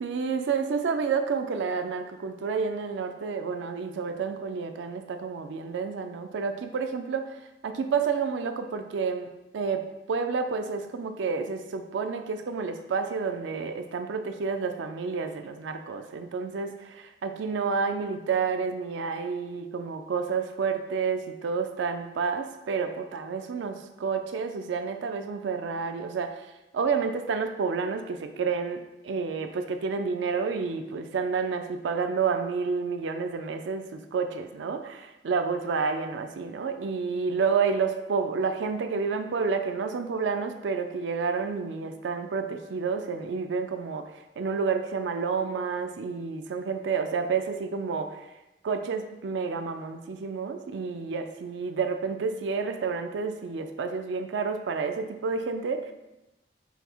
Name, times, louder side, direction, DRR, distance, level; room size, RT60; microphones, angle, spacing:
voice 1, 0.0-7.4 7.6-9.3 9.5-9.8 10.1-26.4 26.7-44.1 44.4-48.2 48.6-55.9, right 5 dB, 85° right, 7 dB, 0.4 m, -30 dB
5.6 x 2.0 x 4.4 m, 0.97 s
head